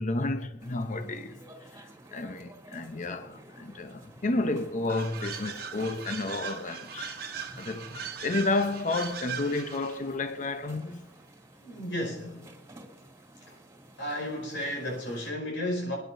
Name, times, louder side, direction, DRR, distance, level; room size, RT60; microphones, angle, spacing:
voice 1, 0.0-1.4 1.7-7.2 7.6-11.1, left 2 dB, 45° left, 0.8 m, -31 dB
sound 1, 0.6-15.3, right 1 dB, 15° right, 2.5 m, -52 dB
sound 2, 4.9-10.1, right 6 dB, 60° right, 1.2 m, -39 dB
voice 2, 11.6-12.5 13.5-13.6 14.0-16.0, left 1 dB, 75° left, 5.2 m, -33 dB
27.0 x 10.5 x 2.7 m
head